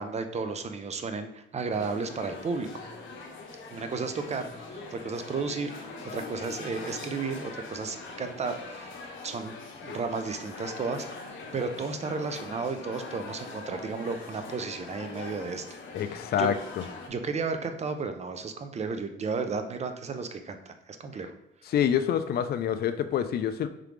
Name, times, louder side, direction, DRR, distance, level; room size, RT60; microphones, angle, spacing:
voice 1, 0.0-2.7 3.7-8.9 9.2-9.5 9.8-11.1 11.5-15.6 16.1-16.5 17.1-21.3, right 4 dB, 35° right, 7 dB, 0.5 m, -33 dB
sound 1, 1.7-17.1, left 3 dB, 75° left, 0.8 m, -42 dB
voice 2, 15.9-16.8 21.7-23.7, left 9 dB, 55° left, 9 dB, 0.4 m, -27 dB
3.7 x 3.3 x 3.3 m, 0.88 s
cardioid pair, 90°, 20 cm